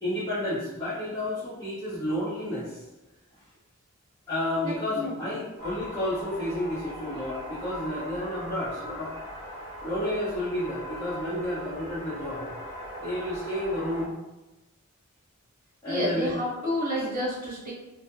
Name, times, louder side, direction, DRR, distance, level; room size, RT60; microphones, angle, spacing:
voice 1, 0.0-2.8 4.3-9.1 9.8-12.5 13.0-14.2 15.8-16.4 16.7-16.9, left 1 dB, 20° left, -13 dB, 0.7 m, -31 dB
voice 2, 4.6-5.4 15.9-17.7, equal, 40° right, -8 dB, 1.0 m, -30 dB
sound 1, 5.6-14.0, equal, 65° right, 0.7 m, -40 dB
2.2 x 2.0 x 2.8 m, 1.0 s
head